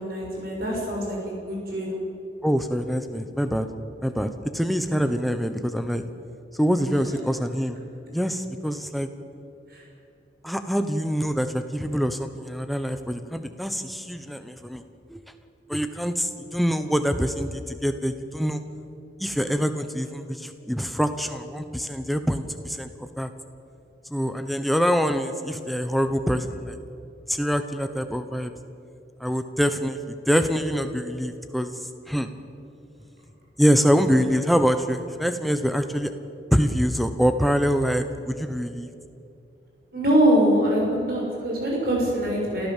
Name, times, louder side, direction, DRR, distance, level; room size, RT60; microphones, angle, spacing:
voice 1, 0.0-2.0 9.7-9.8 39.9-42.7, right 1 dB, 55° right, -3 dB, 6.5 m, -23 dB
voice 2, 2.4-3.6 4.0-6.0 6.5-7.8 8.1-9.1 10.4-14.8 15.1-15.2 15.7-18.6 19.2-23.3 24.1-26.8 27.3-28.5 29.2-30.0 30.3-31.7 32.1-32.3 33.6-36.1 36.5-38.9, equal, ahead, 8 dB, 1.0 m, -25 dB
28.5 x 14.0 x 7.5 m, 2.7 s
head